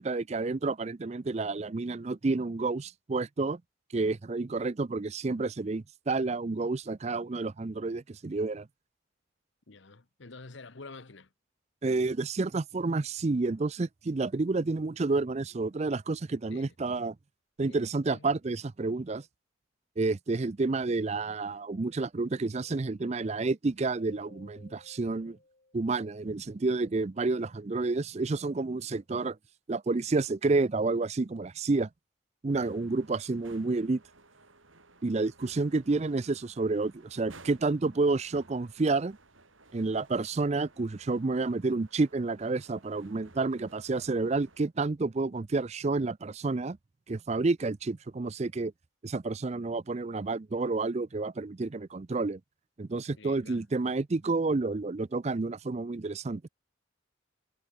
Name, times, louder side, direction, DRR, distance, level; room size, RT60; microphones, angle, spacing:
voice 1, 0.0-3.6 3.9-8.7 11.8-17.1 17.6-19.2 20.0-25.4 25.7-29.4 29.7-31.9 32.4-34.0 35.0-39.2 39.7-46.8 47.1-48.7 49.0-52.4 52.8-56.4, right 3 dB, 30° right, 0.4 m, -30 dB
voice 2, 9.7-11.3 16.5-16.7 17.6-17.8 18.1-18.3 53.2-53.6, left 3 dB, 65° left, 1.1 m, -48 dB
sound 1, 24.1-26.7, left 2 dB, 40° left, 1.5 m, -59 dB
sound 2, 32.5-44.6, right 3 dB, 75° right, 6.7 m, -57 dB
head